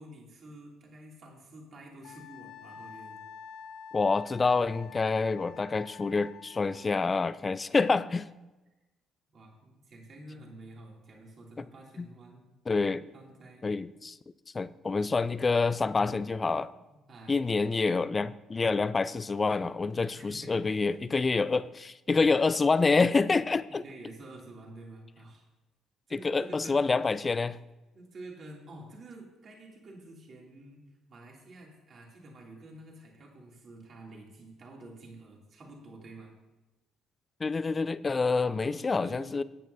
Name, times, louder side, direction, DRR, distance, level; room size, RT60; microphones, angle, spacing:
voice 1, 0.0-3.2 9.3-12.5 13.1-13.7 16.9-17.5 20.2-21.2 23.7-25.4 26.1-26.8 27.9-30.8 31.1-36.3 38.4-39.3, right 1 dB, 45° right, -1 dB, 2.8 m, -49 dB
Wind instrument woodwind instrument, 2.0-6.9, left 6 dB, 60° left, 0.9 m, -48 dB
voice 2, 3.9-8.3 12.0-12.1 12.7-13.0 13.6-14.2 14.5-16.7 17.3-23.8 26.2-27.6 37.4-39.4, left 4 dB, 30° left, 17 dB, 0.4 m, -27 dB
15.0 x 9.2 x 2.7 m, 1.1 s
figure-of-eight pair, 45°, 0 cm